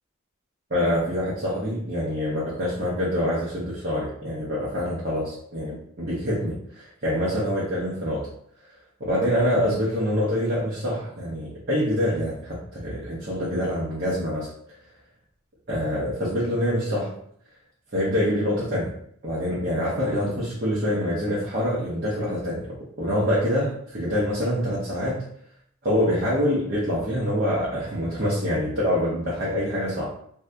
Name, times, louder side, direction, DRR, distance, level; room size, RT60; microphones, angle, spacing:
voice 1, 0.7-8.3 9.0-14.5 15.7-17.1 17.9-18.9 19.2-25.3 25.8-30.1, equal, 50° right, -8 dB, 0.8 m, -25 dB
2.7 x 2.3 x 3.4 m, 0.63 s
head